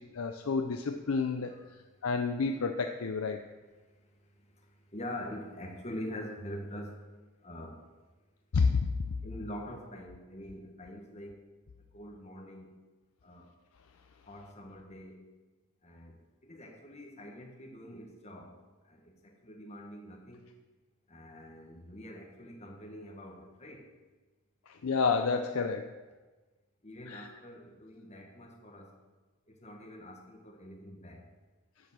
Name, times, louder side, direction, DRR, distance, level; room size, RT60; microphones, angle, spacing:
voice 1, 0.0-1.5 2.0-3.4 8.5-8.9 24.7-25.9 27.1-27.3, left 4 dB, 70° left, 5 dB, 0.5 m, -30 dB
voice 2, 3.8-7.1 7.4-7.8 9.2-11.4 11.9-12.7 13.2-13.5 14.3-15.2 15.8-18.6 18.8-20.5 21.1-23.9 26.8-28.9 29.5-31.3, left 1 dB, 30° left, 0 dB, 1.5 m, -45 dB
10.5 x 5.3 x 7.4 m, 1.2 s
head